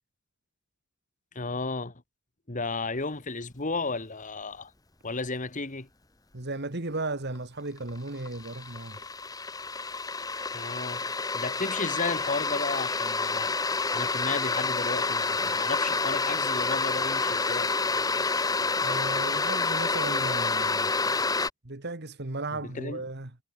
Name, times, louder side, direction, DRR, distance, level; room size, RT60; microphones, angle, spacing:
voice 1, 1.4-2.0 2.5-4.7 5.0-5.9 10.5-11.1 11.3-13.6 13.9-17.7 22.5-23.0, left 3 dB, 35° left, 1.8 m, -33 dB
voice 2, 6.3-9.0 18.8-20.9 21.6-23.3, right 2 dB, 50° right, 2.0 m, -35 dB
sound 1, 7.4-7.5 7.8-21.5, left 4 dB, 15° left, 1.1 m, -28 dB
head